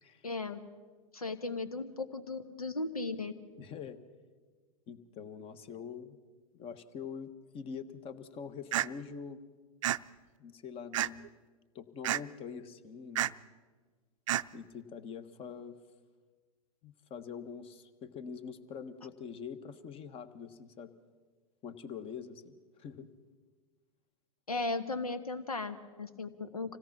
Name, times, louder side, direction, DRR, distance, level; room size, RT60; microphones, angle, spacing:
voice 1, 0.2-0.6 1.1-3.3 24.5-26.8, left 3 dB, 85° left, 10 dB, 1.5 m, -36 dB
voice 2, 3.6-4.0 4.9-6.2 6.5-9.4 10.4-11.3 11.7-13.4 14.5-15.8 16.8-20.9 21.6-23.1, left 6 dB, 30° left, 12 dB, 1.3 m, -44 dB
sound 1, 8.7-8.9 9.8-10.0 10.9-11.3 12.0-12.2 13.2-13.3 14.3-14.4, right 13 dB, 60° right, 0.5 m, -29 dB
26.0 x 17.0 x 5.9 m, 1.4 s
figure-of-eight pair, 100°, 18 cm